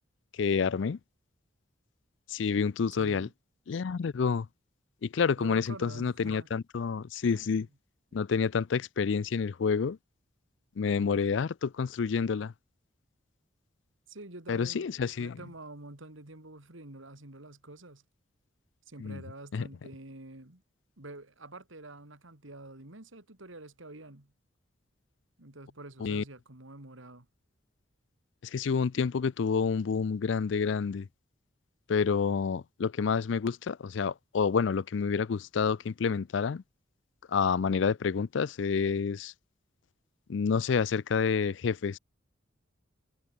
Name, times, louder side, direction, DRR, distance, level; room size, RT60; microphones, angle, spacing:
voice 1, 0.3-1.0 2.3-3.3 3.7-4.5 5.0-7.7 8.1-10.0 10.8-12.5 14.5-15.4 19.0-19.2 19.5-19.7 26.0-26.2 28.4-31.1 31.9-36.6 37.3-39.3 40.3-42.0, left 5 dB, 65° left, 0.4 m, -28 dB
voice 2, 2.9-3.3 5.4-6.5 7.3-7.7 14.1-18.0 18.9-20.6 21.0-24.3 25.4-27.3, right 2 dB, 80° right, 2.9 m, -47 dB
head